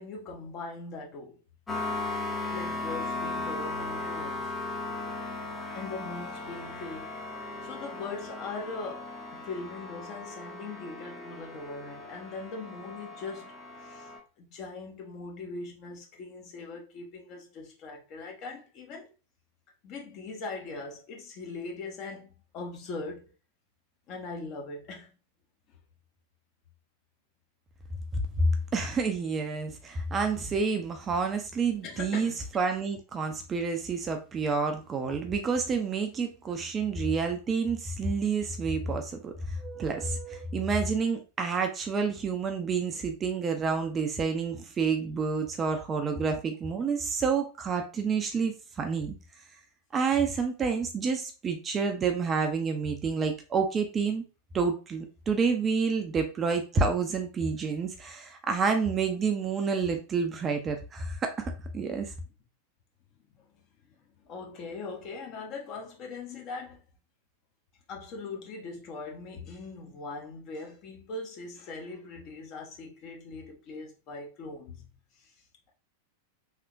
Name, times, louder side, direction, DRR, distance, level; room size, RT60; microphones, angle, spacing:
voice 1, 0.0-1.4 2.5-4.5 5.6-7.1 7.6-13.5 13.8-14.1 14.4-19.1 19.8-23.3 24.1-25.1 25.7-25.8 31.8-32.3 63.3-63.5 64.2-66.8 67.9-74.9 75.2-75.3, left 3 dB, 40° left, 0.9 m, -40 dB
sound 1, 1.7-14.2, left 2 dB, 10° left, 0.7 m, -37 dB
voice 2, 28.4-49.2 49.9-54.2 54.5-62.1, right 5 dB, 20° right, 0.5 m, -29 dB
3.4 x 2.8 x 2.5 m
figure-of-eight pair, 90°, 0 cm